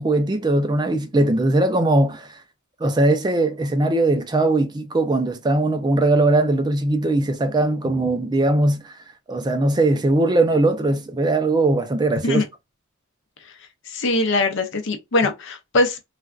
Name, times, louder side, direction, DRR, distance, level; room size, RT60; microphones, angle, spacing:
voice 1, 0.0-2.4 2.8-8.9 9.3-12.4, right 2 dB, 20° right, 0.4 m, -20 dB
voice 2, 13.9-16.0, left 2 dB, 60° left, 0.6 m, -21 dB
3.3 x 2.4 x 2.3 m
head